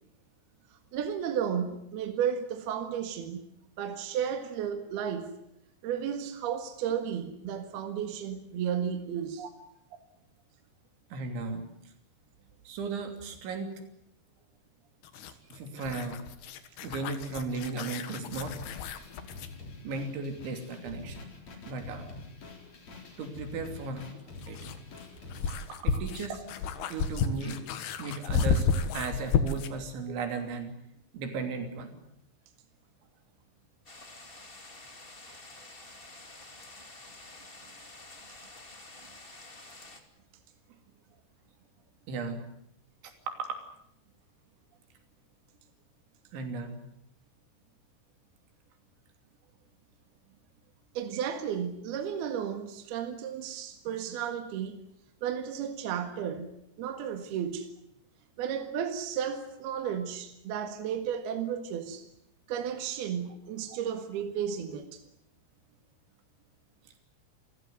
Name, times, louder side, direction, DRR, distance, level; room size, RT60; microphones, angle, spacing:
voice 1, 0.9-3.5 3.8-5.3 5.8-9.4 25.7-26.0 51.0-54.8 55.2-57.7 58.4-62.0 62.5-65.0, right 8 dB, 65° right, 6 dB, 3.5 m, -33 dB
voice 2, 11.1-11.9 12.7-13.7 15.5-16.2 16.8-18.6 19.8-21.2 21.7-22.2 23.2-24.1 24.5-24.7 25.5-25.6 25.8-26.5 26.9-27.6 28.0-28.7 28.9-30.7 31.1-32.0 42.1-42.5 43.0-43.6 46.3-46.8, right 3 dB, 80° right, 6 dB, 5.4 m, -36 dB
sound 1, 15.0-19.6 21.9-22.0 24.0-29.8, left 5 dB, 65° left, 3.4 m, -32 dB
sound 2, 18.4-25.6, left 3 dB, 35° left, 5.2 m, -46 dB
sound 3, 33.8-40.0, left 2 dB, 20° left, 1.4 m, -49 dB
28.5 x 16.5 x 9.4 m, 0.75 s
omnidirectional pair, 5.3 m